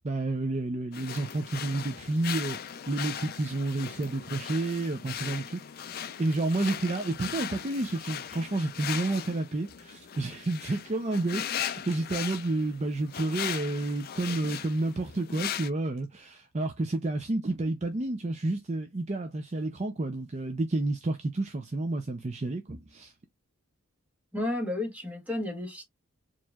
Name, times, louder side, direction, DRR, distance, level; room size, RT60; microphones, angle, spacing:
voice 1, 0.0-23.1, right 2 dB, 30° right, 0.5 m, -30 dB
sound 1, 0.9-15.7, left 9 dB, 45° left, 0.4 m, -38 dB
voice 2, 24.3-25.8, left 1 dB, 5° right, 1.2 m, -32 dB
4.5 x 3.0 x 2.3 m
head